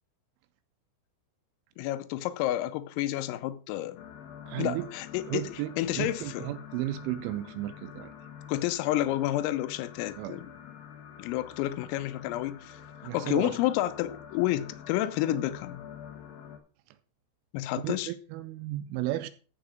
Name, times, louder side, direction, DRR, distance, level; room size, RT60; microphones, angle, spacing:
voice 1, 1.8-4.0 4.6-5.4 5.8-6.5 8.5-10.5 11.2-12.8 13.1-15.8 17.5-18.1, left 14 dB, 85° left, 3.4 m, -30 dB
sound 1, 4.0-16.6, left 8 dB, 70° left, 2.3 m, -47 dB
voice 2, 4.5-4.9 5.3-8.1 10.2-10.4 13.0-13.6 16.9-17.0 17.8-19.3, right 14 dB, 85° right, 2.9 m, -34 dB
14.5 x 5.0 x 5.0 m
omnidirectional pair, 6.0 m